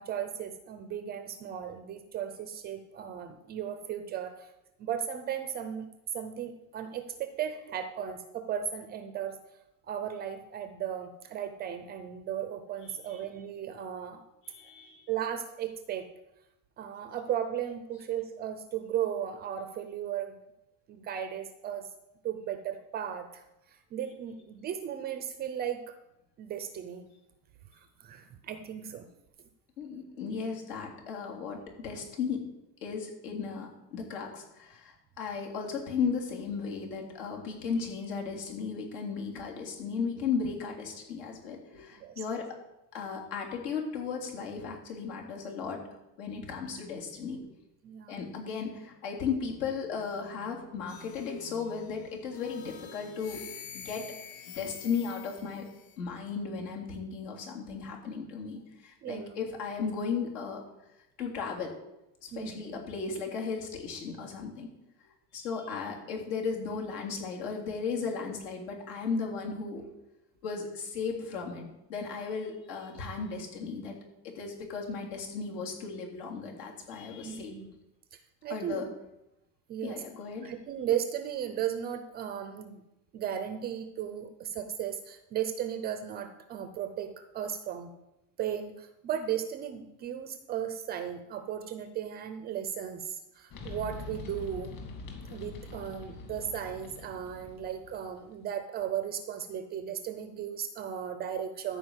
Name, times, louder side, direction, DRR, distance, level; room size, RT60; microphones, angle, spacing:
voice 1, 0.0-4.5 4.8-5.9 6.1-9.4 9.9-14.2 14.6-14.7 15.1-16.1 16.8-20.4 20.9-21.9 22.2-23.4 23.7-26.0 26.4-27.1 27.7-29.1 41.9-42.2 47.8-48.2 59.0-59.4 62.3-62.8 77.2-77.7 78.1-78.8 79.7-80.0 80.4-82.8 83.1-87.9 88.4-94.7 95.3-101.8, right 9 dB, 25° right, 9 dB, 0.4 m, -36 dB
voice 2, 12.8-13.1 14.4-15.1 29.8-32.4 32.8-42.4 42.9-45.8 46.2-47.5 48.1-53.4 53.7-54.0 54.5-55.7 56.0-60.6 61.2-61.7 62.2-64.7 65.3-69.8 70.4-73.9 74.2-77.5 78.5-78.8 79.8-80.5, left 5 dB, 80° left, 0 dB, 3.4 m, -35 dB
sound 1, 50.9-51.8 52.3-56.0, left 8 dB, 65° left, 3.1 m, -47 dB
sound 2, 93.5-98.3, left 4 dB, 40° left, 2.6 m, -44 dB
13.5 x 5.0 x 8.0 m, 0.90 s
cardioid pair, 160°, 46 cm